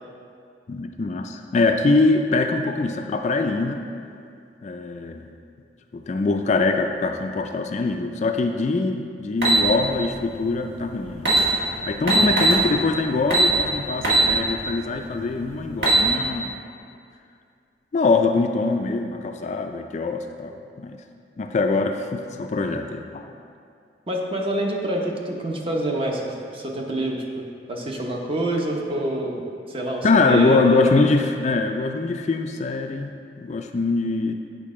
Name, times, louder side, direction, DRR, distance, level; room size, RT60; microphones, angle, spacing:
voice 1, 0.7-3.8 4.6-5.3 5.9-11.3 11.8-16.6 17.9-20.5 20.8-21.0 21.4-23.3 30.0-33.1 33.4-34.3, left 3 dB, 40° left, 5 dB, 0.3 m, -23 dB
sound 1, 9.4-9.6 10.8-10.9 11.2-11.4 12.1-12.6 13.3-13.5 14.0-14.3 14.7-14.8 15.6-16.0, right 2 dB, 70° right, 1.6 m, -19 dB
voice 2, 24.1-27.2 27.7-30.9, right 1 dB, 30° right, 0 dB, 0.8 m, -27 dB
8.4 x 5.1 x 3.7 m, 2.3 s
head